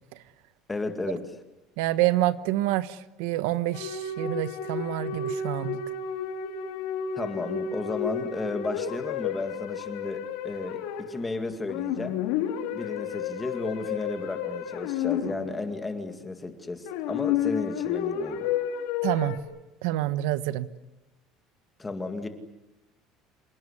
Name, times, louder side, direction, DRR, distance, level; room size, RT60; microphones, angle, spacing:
voice 1, 0.7-1.2 7.2-12.2 12.7-18.5 21.8-22.3, left 3 dB, 10° left, 2.0 m, -33 dB
voice 2, 1.8-5.8 19.0-19.4 19.8-20.7, right 15 dB, 90° right, 1.2 m, -27 dB
sound 1, 3.7-11.4 11.7-15.8 16.9-19.4, left 8 dB, 85° left, 3.6 m, -31 dB
27.5 x 18.5 x 9.8 m
cardioid pair, 175°, 0 cm